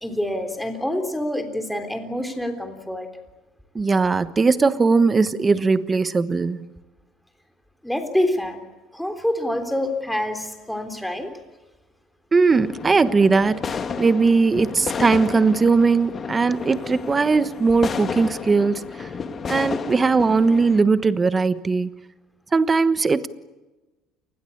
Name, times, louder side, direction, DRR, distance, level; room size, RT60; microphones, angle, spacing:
voice 1, 0.0-3.1 7.8-8.6 8.9-11.3, left 1 dB, ahead, 3.6 m, -26 dB
voice 2, 3.7-6.6 12.3-19.1 19.5-21.9 22.5-23.3, right 4 dB, 20° right, 1.2 m, -19 dB
sound 1, 12.5-20.8, left 6 dB, 30° left, 1.9 m, -32 dB
29.0 x 20.5 x 8.7 m
cardioid pair, 130°, 0 cm